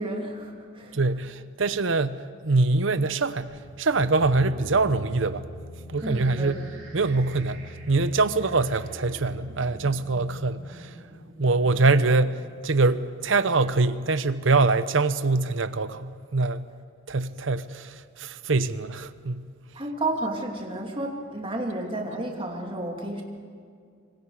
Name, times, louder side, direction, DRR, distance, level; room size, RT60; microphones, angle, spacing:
voice 1, 0.0-1.0 6.0-6.6 19.8-23.2, right 1 dB, 25° right, 2.7 m, -31 dB
voice 2, 0.9-5.4 5.9-6.6 6.9-10.9 11.4-16.6 17.1-19.5, right 3 dB, 65° right, 0.8 m, -24 dB
sound 1, 3.4-10.8, equal, 10° right, 6.6 m, -44 dB
sound 2, 6.0-13.9, right 1 dB, 90° right, 7.2 m, -49 dB
26.0 x 25.0 x 4.9 m
head